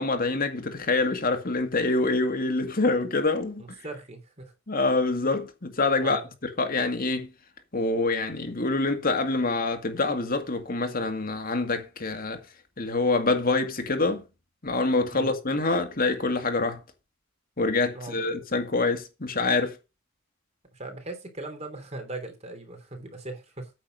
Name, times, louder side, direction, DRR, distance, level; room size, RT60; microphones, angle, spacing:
voice 1, 0.0-3.6 4.7-6.2 6.6-7.3 7.7-12.4 12.8-14.2 14.6-16.8 17.6-19.8, left 3 dB, 45° left, 2.0 m, -26 dB
voice 2, 3.6-4.5 6.0-6.3 15.1-15.4 17.9-18.2 20.7-23.7, right 2 dB, 35° right, 3.3 m, -39 dB
9.2 x 7.3 x 5.3 m
head